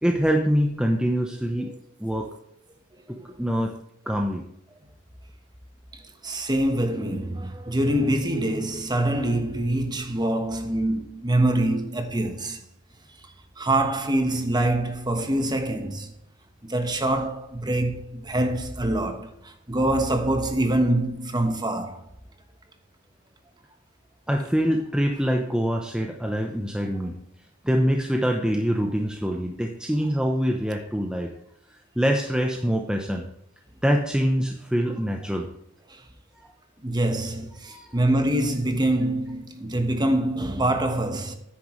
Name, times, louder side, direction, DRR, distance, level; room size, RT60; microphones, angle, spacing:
voice 1, 0.0-2.3 3.1-3.7 4.1-4.4 24.3-27.2 27.6-31.3 32.0-33.3 33.8-35.5 36.4-36.5 37.7-38.0, equal, 5° right, 0.8 m, -25 dB
voice 2, 5.9-12.6 13.6-16.1 16.6-22.0 35.9-36.0 36.8-41.4, right 1 dB, 20° right, 1.2 m, -25 dB
9.9 x 9.4 x 3.2 m
head